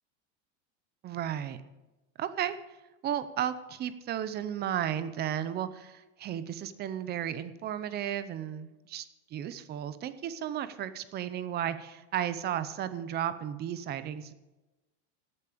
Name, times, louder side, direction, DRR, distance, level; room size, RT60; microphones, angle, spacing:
voice 1, 1.0-1.6 2.2-2.6 3.0-9.0 9.3-14.3, right 10 dB, 30° right, 13 dB, 0.6 m, -34 dB
14.0 x 8.5 x 5.1 m, 1.1 s
supercardioid pair, 140°, 36 cm